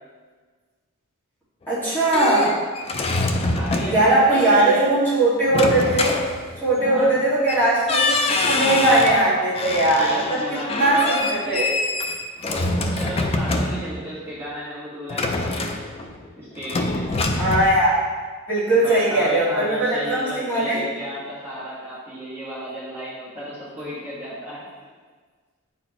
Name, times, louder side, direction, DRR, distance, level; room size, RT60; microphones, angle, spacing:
sound 1, 1.7-4.2 5.5-6.8 7.5-7.6 7.9-9.2 9.5-14.1 15.1-16.3 16.6-17.6, left 2 dB, 25° left, 0.4 m, -25 dB
voice 1, 1.7-2.5 3.9-6.1 6.6-8.2 8.5-11.0 11.3-11.7 17.4-18.0 18.5-20.8, right 1 dB, 10° left, -11 dB, 2.0 m, -19 dB
voice 2, 3.6-4.9 6.8-7.2 10.0-11.7 12.4-15.8 16.4-17.1 18.8-24.7, equal, 10° right, -12 dB, 1.8 m, -34 dB
9.6 x 4.1 x 3.0 m, 1.5 s
head